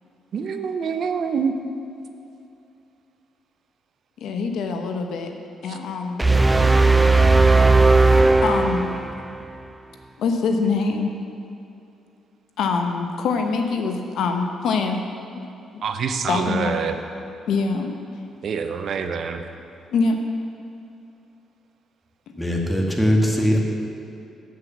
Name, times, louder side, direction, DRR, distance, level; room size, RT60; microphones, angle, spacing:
voice 1, 0.3-1.5 5.7-5.8 15.8-17.0 18.4-19.4, right 6 dB, 60° right, 7 dB, 0.7 m, -26 dB
voice 2, 4.2-5.3 5.6-6.2 8.4-8.9 10.2-11.1 12.6-15.0 15.7-15.8 16.3-16.8 17.5-17.9 19.9-20.2, left 4 dB, 75° left, 4 dB, 1.0 m, -24 dB
sound 1, 6.2-9.4, right 3 dB, 15° right, 0.6 m, -16 dB
voice 3, 22.4-23.6, equal, 10° left, 0 dB, 1.7 m, -20 dB
7.9 x 7.5 x 7.2 m, 2.7 s
cardioid pair, 90°, 0 cm